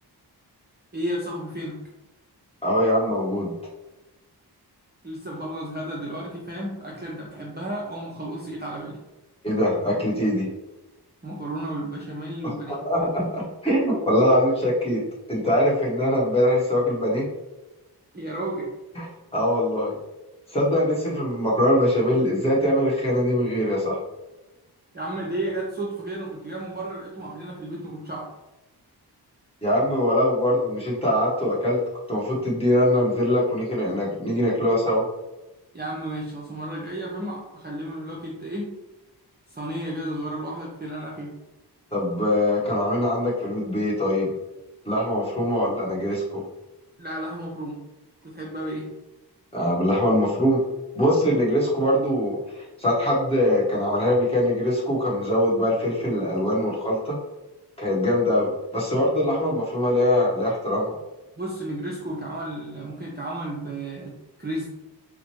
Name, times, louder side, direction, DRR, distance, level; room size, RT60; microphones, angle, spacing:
voice 1, 0.9-1.8 5.0-9.0 11.2-12.8 18.1-18.7 24.9-28.3 35.7-38.7 39.5-41.3 47.0-47.8 48.2-48.9 61.4-64.7, right 1 dB, 25° right, -3 dB, 0.6 m, -33 dB
voice 2, 2.6-3.5 9.4-10.5 12.4-15.0 15.3-17.3 18.9-19.1 19.3-19.9 20.5-24.0 29.6-31.8 32.1-35.1 41.9-44.3 44.8-46.4 49.5-50.6 50.9-57.2 57.8-61.0, left 1 dB, 15° left, -6 dB, 1.3 m, -22 dB
4.8 x 2.1 x 3.0 m, 1.0 s
wide cardioid pair, 125°, 40 cm